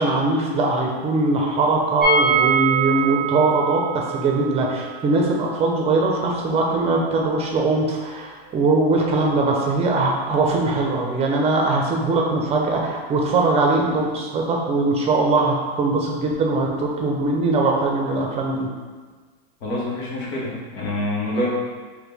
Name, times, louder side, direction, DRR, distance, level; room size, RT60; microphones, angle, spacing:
voice 1, 0.0-18.7, right 3 dB, 20° right, 0 dB, 0.6 m, -21 dB
sound 1, 2.0-7.8 8.0-8.1 8.4-8.5, right 5 dB, 5° left, 1.5 m, -25 dB
voice 2, 19.6-21.5, left 1 dB, 80° left, -5 dB, 1.5 m, -26 dB
4.2 x 2.8 x 3.4 m, 1.4 s
supercardioid pair, 135°, 32 cm